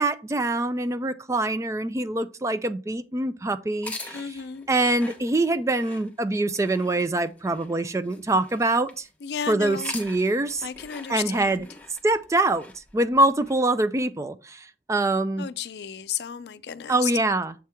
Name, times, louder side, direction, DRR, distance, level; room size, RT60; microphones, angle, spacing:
voice 1, 0.0-4.4 4.7-9.1 9.5-10.7 11.1-11.7 12.0-15.5 16.9-17.5, right 2 dB, 15° right, 0.3 m, -24 dB
sound 1, 3.7-9.1 9.6-13.6, left 3 dB, 10° left, 0.9 m, -43 dB
voice 2, 4.1-4.7 9.2-10.0 10.6-11.7 15.4-17.1, left 8 dB, 70° left, 0.4 m, -33 dB
7.5 x 4.4 x 3.5 m
head